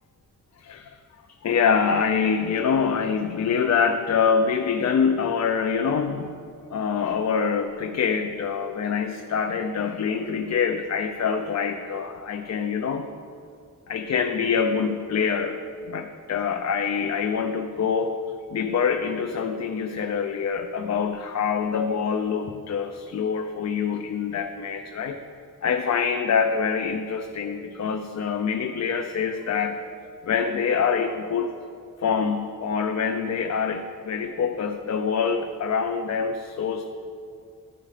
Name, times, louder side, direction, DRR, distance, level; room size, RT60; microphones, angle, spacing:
voice 1, 0.6-1.0 1.3-6.4 6.7-13.1 13.9-15.6 15.9-18.2 18.5-25.1 25.6-29.8 30.2-31.5 32.0-36.9, left 6 dB, 55° left, 5 dB, 0.4 m, -25 dB
12.5 x 4.8 x 4.9 m, 2.5 s
wide cardioid pair, 145°, 34 cm